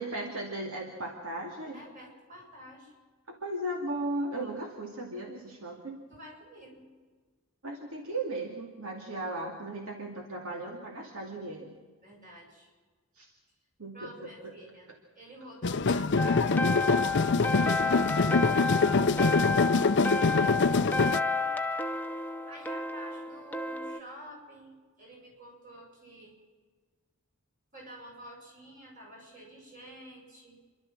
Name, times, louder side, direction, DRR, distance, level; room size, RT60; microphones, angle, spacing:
voice 1, 0.0-1.8 3.3-6.0 7.6-11.7 13.1-13.3 13.8-14.1 14.4-14.5, right 1 dB, 65° right, 1 dB, 2.4 m, -36 dB
voice 2, 1.7-2.9 6.1-6.9 12.0-12.7 13.9-14.9 15.1-18.4 18.8-21.6 22.5-26.4 27.7-30.6, equal, 35° right, -1 dB, 7.5 m, -49 dB
sound 1, 15.6-21.2, left 4 dB, 50° left, 0.6 m, -25 dB
sound 2, 16.2-24.0, left 3 dB, 10° left, 0.7 m, -31 dB
29.0 x 12.5 x 7.5 m, 1.4 s
head